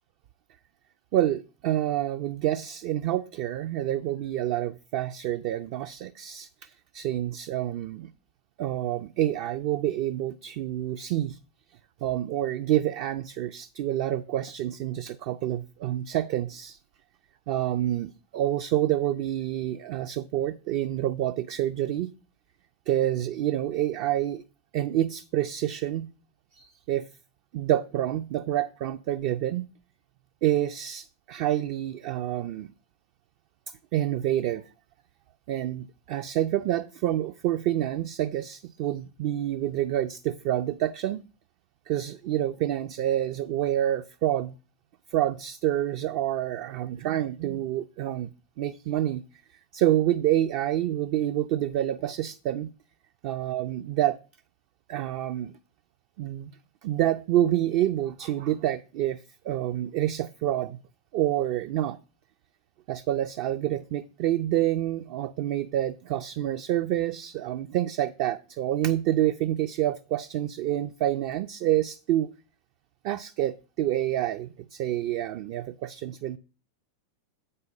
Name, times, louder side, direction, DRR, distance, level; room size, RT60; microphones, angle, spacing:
voice 1, 1.1-8.1 8.6-11.4 12.0-16.8 17.5-22.1 22.9-24.4 24.7-26.1 26.5-27.1 27.5-29.7 30.4-32.7 33.9-34.6 35.5-41.2 41.9-44.5 45.1-48.3 48.6-49.2 49.7-52.7 53.2-54.2 54.9-55.5 56.2-56.5 56.8-60.8 61.1-62.0 62.9-72.3 73.0-76.4, right 12 dB, 45° right, 0.4 m, -28 dB
7.9 x 5.5 x 5.2 m
figure-of-eight pair, 90°, 0 cm